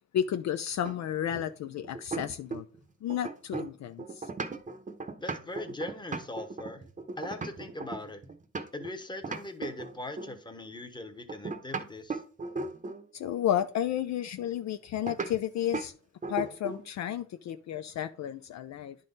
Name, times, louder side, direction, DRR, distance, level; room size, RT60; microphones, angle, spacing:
voice 1, 0.1-2.7 3.0-4.3 13.1-15.9 16.3-19.0, left 10 dB, 60° left, 0.5 m, -32 dB
sound 1, 0.8-2.8 3.1-8.9 9.2-10.4 11.3-13.1 15.1-15.3 15.7-15.9 16.2-16.9, right 4 dB, 25° right, 0.8 m, -37 dB
voice 2, 5.2-6.8 7.2-8.2 8.7-12.2, left 2 dB, 15° left, 1.0 m, -40 dB
10.5 x 3.9 x 3.9 m
cardioid pair, 120°, 31 cm